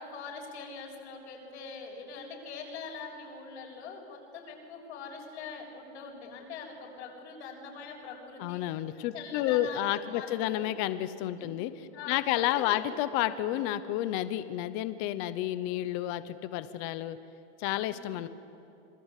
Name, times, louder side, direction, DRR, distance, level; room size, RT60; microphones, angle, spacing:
voice 1, 0.0-8.6 8.9-9.9 10.1-10.7 11.3-11.5 11.9-12.9 17.8-18.1, left 5 dB, 80° left, 0 dB, 7.3 m, -43 dB
voice 2, 8.4-17.2 17.6-18.3, left 13 dB, 35° left, 13 dB, 0.9 m, -31 dB
26.5 x 23.0 x 8.4 m, 2.7 s
supercardioid pair, 175°, 34 cm